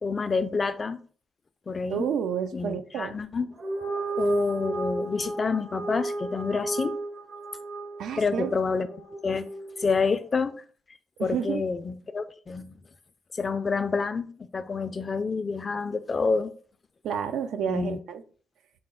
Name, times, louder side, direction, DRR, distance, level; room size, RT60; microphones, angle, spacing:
voice 1, 0.0-1.0 1.7-2.1 2.5-3.5 4.2-7.0 8.2-9.5 9.8-10.6 11.2-12.8 13.3-16.5 17.7-18.0, left 4 dB, 35° left, 0.3 m, -28 dB
voice 2, 1.9-3.2 8.0-8.6 11.2-11.6 17.0-18.2, right 8 dB, 80° right, 0.4 m, -30 dB
sound 1, 3.5-10.1, right 3 dB, 55° right, 0.8 m, -34 dB
4.1 x 2.0 x 3.7 m
cardioid pair, 90°, 0 cm